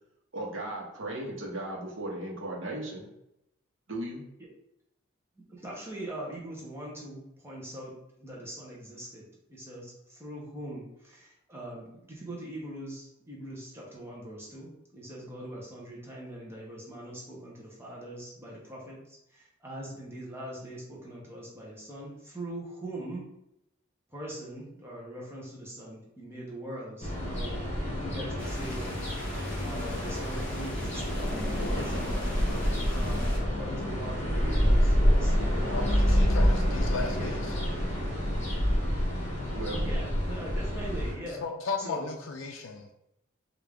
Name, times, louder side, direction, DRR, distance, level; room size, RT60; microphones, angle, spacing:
voice 1, 0.3-3.1 3.9-4.2 39.5-39.8, right 1 dB, 65° right, -2 dB, 0.9 m, -36 dB
voice 2, 5.4-23.2 24.1-27.6 28.0-29.0 29.6-32.6 32.9-36.4 36.6-37.6 39.8-41.4 41.8-42.1, right 1 dB, 10° right, -5 dB, 0.7 m, -42 dB
sound 1, 27.0-41.1, equal, 35° left, 1.0 m, -27 dB
sound 2, 28.4-33.4, equal, 5° left, 1.1 m, -39 dB
voice 3, 35.7-37.5 41.2-42.9, left 4 dB, 70° left, 2 dB, 0.4 m, -36 dB
3.4 x 2.4 x 3.3 m, 0.83 s
head